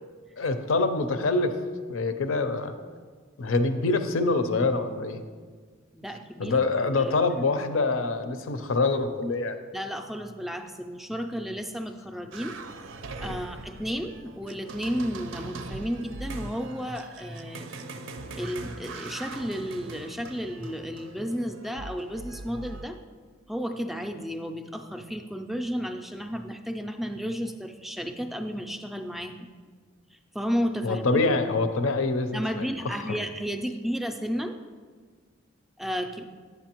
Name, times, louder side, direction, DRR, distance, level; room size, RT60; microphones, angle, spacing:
voice 1, 0.4-1.5 1.9-2.7 3.4-5.2 6.4-9.6 30.8-32.7, left 3 dB, 85° left, 9 dB, 0.6 m, -25 dB
voice 2, 5.9-6.6 7.0-7.1 9.7-12.6 13.2-17.7 18.3-23.0 23.5-29.5 30.1-31.0 32.3-34.5 35.8-36.3, equal, ahead, 5 dB, 0.3 m, -33 dB
sound 1, 12.3-22.9, right 3 dB, 70° right, 0.4 m, -41 dB
7.9 x 7.0 x 2.9 m, 1.6 s
head